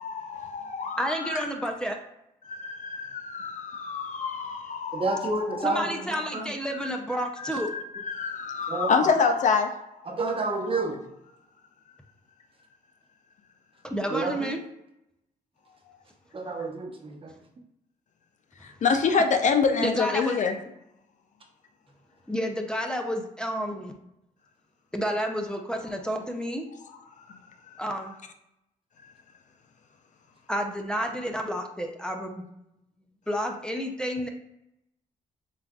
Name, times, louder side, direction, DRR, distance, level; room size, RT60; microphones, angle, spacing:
voice 1, 0.0-1.4 2.4-5.9 7.4-9.7 10.6-10.8 18.6-20.5 27.3-27.4, left 5 dB, 55° left, 6 dB, 0.5 m, -27 dB
voice 2, 1.0-2.0 5.6-7.7 13.8-14.6 19.8-20.4 22.3-23.9 24.9-26.7 27.8-28.1 30.5-32.5 33.3-34.3, equal, 5° left, 2 dB, 0.5 m, -30 dB
voice 3, 4.9-5.8 6.3-6.4 8.7-8.9 10.1-11.0 14.1-14.3 16.3-17.2, right 3 dB, 35° right, 1 dB, 0.9 m, -28 dB
7.2 x 2.5 x 2.3 m, 0.84 s
cardioid pair, 90°, 15 cm